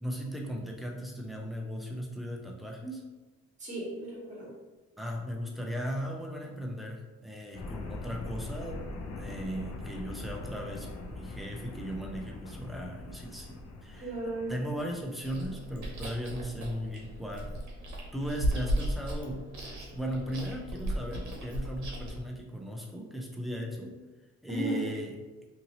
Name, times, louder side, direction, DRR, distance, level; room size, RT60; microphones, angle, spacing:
voice 1, 0.0-3.0 5.0-8.8 9.2-14.2 14.5-17.7 18.1-23.9 24.4-25.2, equal, ahead, 0 dB, 0.5 m, -37 dB
voice 2, 3.6-4.5 14.0-14.6 24.5-24.9, right 1 dB, 25° right, -6 dB, 1.2 m, -35 dB
sound 1, 7.5-15.0, left 2 dB, 55° left, 0.5 m, -42 dB
Chewing mastication, 15.2-22.2, equal, 65° right, 0.9 m, -35 dB
2.7 x 2.7 x 2.9 m, 1.2 s
cardioid pair, 90°, 30 cm